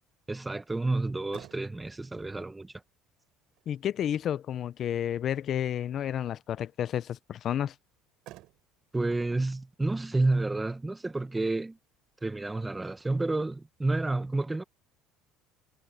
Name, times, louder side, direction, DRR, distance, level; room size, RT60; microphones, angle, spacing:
voice 1, 0.3-2.7 8.9-11.8 12.2-14.6, right 2 dB, 10° right, 1.0 m, -30 dB
Motor vehicle (road), 1.3-13.9, right 17 dB, 60° right, 7.4 m, -59 dB
voice 2, 3.7-7.7, left 10 dB, 40° left, 0.6 m, -31 dB
cardioid pair, 155°, 0 cm